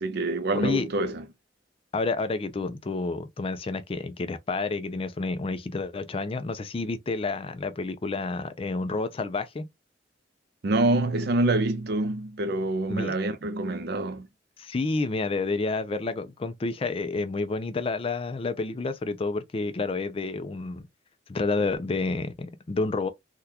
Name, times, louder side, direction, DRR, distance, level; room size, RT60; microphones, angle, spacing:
voice 1, 0.0-1.2 10.6-14.3, right 2 dB, 60° right, 0.5 m, -26 dB
voice 2, 0.5-0.9 1.9-9.7 12.9-13.1 14.6-20.9 21.3-23.1, left 3 dB, 30° left, 0.4 m, -29 dB
3.6 x 2.3 x 2.7 m
head